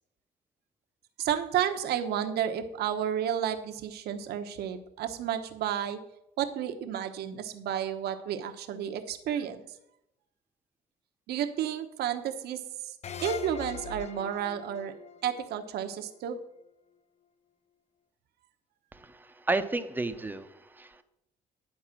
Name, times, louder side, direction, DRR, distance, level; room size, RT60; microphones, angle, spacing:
voice 1, 1.2-6.0 6.4-9.6 11.3-12.9 13.2-14.9 15.2-16.4, right 9 dB, 70° right, 6 dB, 1.0 m, -31 dB
sound 1, 13.0-16.3, left 8 dB, 40° left, 0.7 m, -41 dB
voice 2, 18.9-21.0, right 2 dB, 10° right, 9 dB, 0.8 m, -32 dB
10.0 x 4.8 x 7.5 m, 0.83 s
cardioid pair, 110°, 17 cm